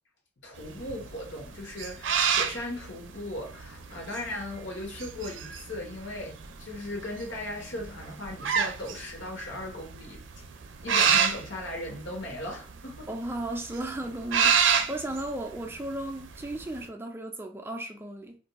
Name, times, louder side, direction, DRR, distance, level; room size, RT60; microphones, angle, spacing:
voice 1, 0.4-10.2 10.8-13.1, left 1 dB, 75° left, 1.1 m, -38 dB
sound 1, 0.6-16.8, right 7 dB, 75° right, 0.5 m, -29 dB
voice 2, 13.1-18.4, right 1 dB, 10° right, 0.3 m, -35 dB
2.5 x 2.2 x 4.0 m
head